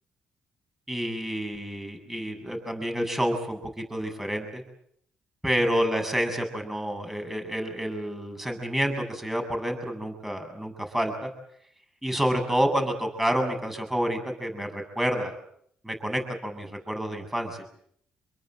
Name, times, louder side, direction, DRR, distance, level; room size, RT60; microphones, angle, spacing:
voice 1, 0.9-4.6 5.4-11.3 12.0-15.3 15.8-17.6, equal, 10° right, 5 dB, 7.8 m, -29 dB
27.5 x 22.5 x 7.9 m, 0.69 s
supercardioid pair, 55°, 3 cm